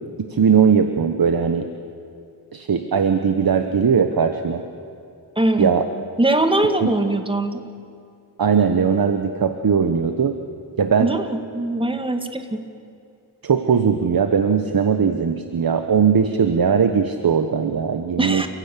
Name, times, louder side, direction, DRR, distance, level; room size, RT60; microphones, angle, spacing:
voice 1, 0.3-1.6 2.5-4.6 5.6-5.8 8.4-10.3 10.8-11.1 13.4-18.5, right 6 dB, 60° right, 8 dB, 1.2 m, -19 dB
voice 2, 5.4-5.7 6.2-7.6 11.0-12.6 18.2-18.5, right 1 dB, 10° right, 7 dB, 2.0 m, -21 dB
29.5 x 16.5 x 8.4 m, 2.4 s
wide cardioid pair, 75°, 40 cm